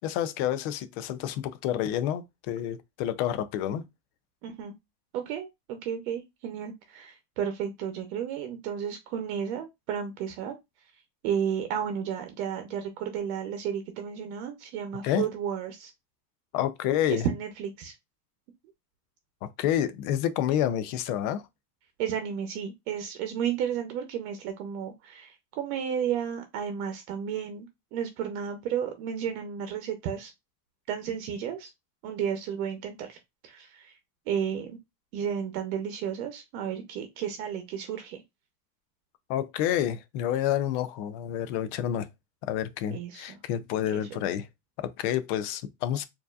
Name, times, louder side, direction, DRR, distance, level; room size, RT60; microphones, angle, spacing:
voice 1, 0.0-3.8 15.0-15.3 16.5-17.3 19.4-21.5 39.3-42.1 42.4-44.5 44.8-46.1, left 11 dB, 45° left, 0.4 m, -29 dB
voice 2, 4.4-4.7 5.1-10.5 11.2-15.9 17.1-17.9 22.0-30.3 30.9-31.7 32.0-33.2 33.4-33.9 34.3-34.8 35.1-38.2 42.9-43.2 43.9-44.0, right 8 dB, 60° right, 0.9 m, -32 dB
4.5 x 2.7 x 2.4 m
supercardioid pair, 150°, 48 cm